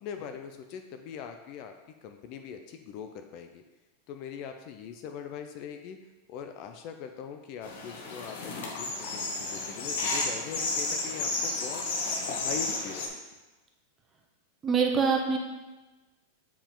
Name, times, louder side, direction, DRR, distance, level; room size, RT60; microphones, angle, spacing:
voice 1, 0.0-1.7 2.0-3.6 4.1-6.0 6.3-11.8 12.2-13.4, left 7 dB, 40° left, 6 dB, 0.5 m, -41 dB
sound 1, 7.6-13.1, left 3 dB, 60° left, 1.1 m, -32 dB
voice 2, 14.6-15.4, right 5 dB, 15° right, 1 dB, 0.8 m, -24 dB
7.1 x 4.7 x 3.8 m, 1.2 s
supercardioid pair, 160°, 0 cm